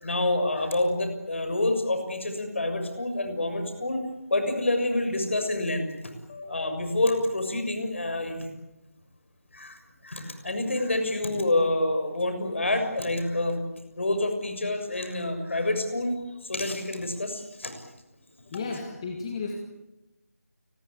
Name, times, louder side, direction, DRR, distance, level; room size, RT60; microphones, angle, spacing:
voice 1, 0.0-4.0 4.3-5.8 6.5-8.5 9.5-13.6 13.9-16.1 16.4-17.8, left 2 dB, 50° left, 6 dB, 6.8 m, -27 dB
voice 2, 18.5-19.6, left 4 dB, 20° left, 2 dB, 2.4 m, -34 dB
29.5 x 21.0 x 8.5 m, 0.97 s
figure-of-eight pair, 165°, 8 cm